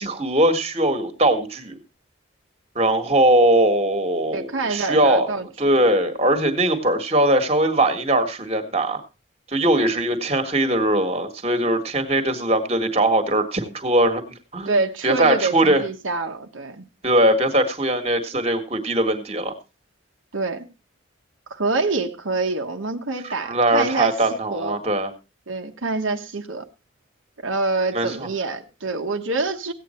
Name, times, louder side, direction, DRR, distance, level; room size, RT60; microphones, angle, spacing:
voice 1, 0.0-1.8 2.7-5.3 5.6-9.0 9.5-14.2 14.5-14.8 15.0-15.8 17.0-19.5 23.2-25.1 27.9-28.1, right 1 dB, 30° right, 7 dB, 1.6 m, -20 dB
voice 2, 4.3-5.7 14.6-16.8 20.3-20.7 21.5-24.8 25.5-26.6 27.4-29.7, right 3 dB, 85° right, 4 dB, 1.2 m, -26 dB
16.0 x 8.8 x 4.3 m, 0.30 s
head